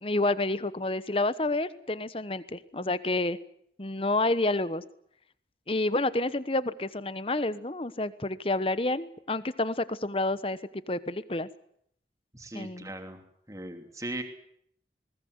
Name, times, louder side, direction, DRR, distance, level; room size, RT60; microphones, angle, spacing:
voice 1, 0.0-3.4 3.8-4.8 5.7-10.6 10.9-11.5 12.5-12.9, left 2 dB, 30° left, 15 dB, 1.1 m, -29 dB
voice 2, 12.3-13.2 13.5-14.2, right 1 dB, 20° right, 5 dB, 3.1 m, -38 dB
21.0 x 19.0 x 9.6 m, 0.69 s
head